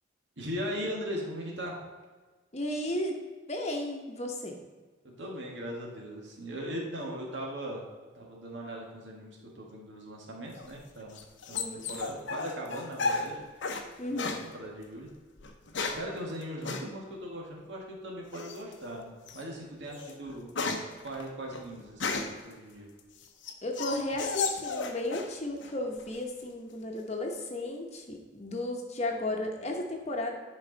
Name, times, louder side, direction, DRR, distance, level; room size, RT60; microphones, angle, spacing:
voice 1, 0.4-1.8 5.0-7.8 8.2-11.2 11.5-13.4 13.7-13.8 14.1-15.1 15.9-20.5 21.0-22.9, equal, 70° right, -1 dB, 1.9 m, -39 dB
voice 2, 2.5-3.2 3.5-4.6 11.5-11.9 14.0-14.4 23.6-30.4, left 1 dB, 35° left, 2 dB, 1.0 m, -34 dB
sound 1, 10.6-13.9 14.2-14.5 15.4-16.1 16.6-16.9 18.3-18.7 19.3-19.4 19.8-22.5 23.0-25.3 25.6-26.2, left 4 dB, 70° left, 0.8 m, -34 dB
10.5 x 4.8 x 4.0 m, 1.3 s
head